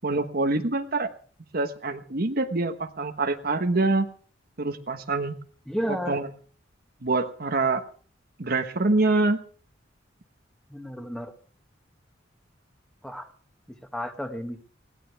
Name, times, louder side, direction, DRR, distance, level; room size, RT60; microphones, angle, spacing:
voice 1, 0.0-1.1 1.5-4.1 4.6-5.3 6.1-6.3 7.0-7.8 8.4-9.4, right 3 dB, 55° right, 8 dB, 1.2 m, -25 dB
voice 2, 5.7-6.2 10.7-11.3 13.0-13.3 13.7-14.6, equal, 5° left, 6 dB, 1.7 m, -32 dB
20.5 x 16.5 x 3.5 m, 0.42 s
head